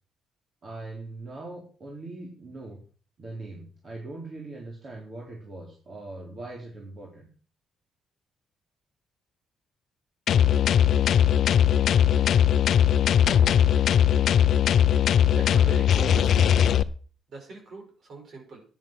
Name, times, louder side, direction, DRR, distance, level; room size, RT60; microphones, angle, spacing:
voice 1, 0.6-2.8 3.2-7.3, right 2 dB, 45° right, -2 dB, 3.9 m, -41 dB
sound 1, 10.3-16.8, left 9 dB, 65° left, 0.6 m, -20 dB
voice 2, 15.3-16.7 17.3-18.6, right 3 dB, 60° right, 2 dB, 6.0 m, -40 dB
10.5 x 10.0 x 6.1 m, 0.40 s
cardioid pair, 90°, 0 cm